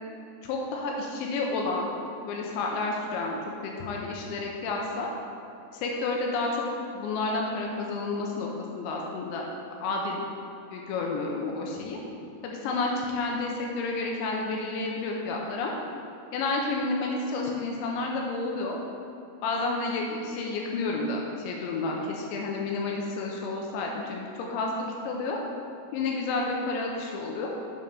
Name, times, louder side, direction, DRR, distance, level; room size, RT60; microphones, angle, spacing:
voice 1, 0.4-1.9 2.3-5.1 5.7-6.7 6.9-8.5 8.7-9.5 9.8-10.2 10.7-12.0 12.4-15.8 16.3-18.8 19.4-25.4 25.9-27.5, left 3 dB, 85° left, -1 dB, 2.6 m, -30 dB
7.5 x 5.4 x 5.3 m, 2.9 s
omnidirectional pair, 5.9 m